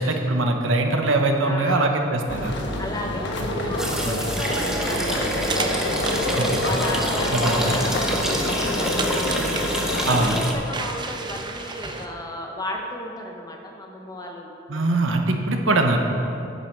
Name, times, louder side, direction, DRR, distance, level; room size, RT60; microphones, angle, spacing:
voice 1, 0.0-2.5 4.1-4.2 7.3-7.8 10.0-10.3 14.7-16.0, right 2 dB, 75° right, 4 dB, 1.1 m, -22 dB
voice 2, 1.4-1.9 2.8-9.6 9.9-15.0, left 1 dB, 20° left, 1 dB, 1.0 m, -34 dB
sound 1, 2.3-10.3, left 1 dB, 60° left, 1.3 m, -27 dB
sound 2, 3.8-10.5, equal, 5° right, 1.0 m, -27 dB
sound 3, 4.2-12.1, right 4 dB, 20° right, 0.6 m, -35 dB
9.8 x 9.4 x 6.0 m, 2.7 s
head